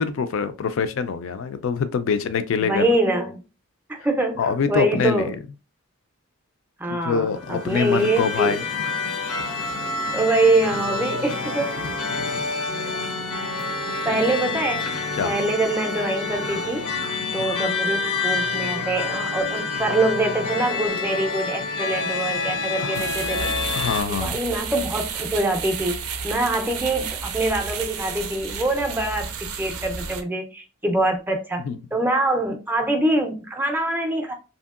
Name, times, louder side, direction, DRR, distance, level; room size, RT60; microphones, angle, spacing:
voice 1, 0.0-2.8 4.4-5.4 6.9-8.6 12.1-12.4 13.0-13.1 14.1-14.2 15.2-15.3 22.8-23.0 23.7-24.4 31.7-31.8, left 6 dB, 60° left, 0.3 m, -25 dB
voice 2, 2.6-3.4 3.9-5.3 6.8-8.7 10.1-11.7 14.0-14.9 15.2-16.9 17.3-23.5 24.1-31.6 31.9-34.3, right 2 dB, 10° right, 0.4 m, -24 dB
sound 1, 7.3-24.0, left 4 dB, 90° left, 0.7 m, -28 dB
sound 2, 22.9-30.2, right 6 dB, 85° right, 0.5 m, -32 dB
2.9 x 2.7 x 2.4 m
head